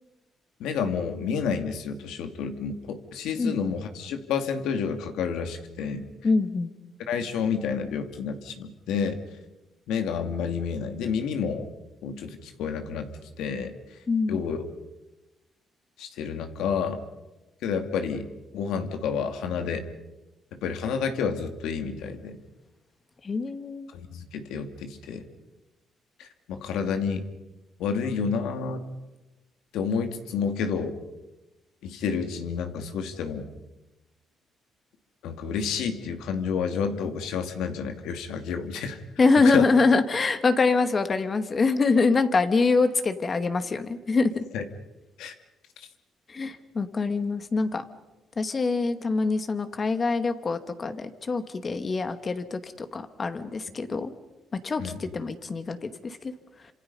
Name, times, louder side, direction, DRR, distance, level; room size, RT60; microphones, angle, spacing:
voice 1, 0.6-6.1 7.1-9.2 9.9-11.7 12.0-13.1 13.4-13.7 14.3-14.6 16.0-17.0 17.6-18.3 18.5-19.9 20.5-22.4 23.9-25.2 26.2-27.3 27.8-28.8 29.7-31.0 31.8-33.5 35.2-39.0 39.4-39.7 44.5-44.7 45.2-45.3 45.8-45.9 54.8-55.0, left 6 dB, 90° left, 7 dB, 2.3 m, -30 dB
voice 2, 6.2-6.7 14.1-14.4 23.2-23.9 39.2-44.4 46.3-47.8 48.4-54.1 54.6-56.3, left 4 dB, 35° left, 9 dB, 2.0 m, -24 dB
28.5 x 26.0 x 5.6 m, 1.0 s
cardioid pair, 90°, 0 cm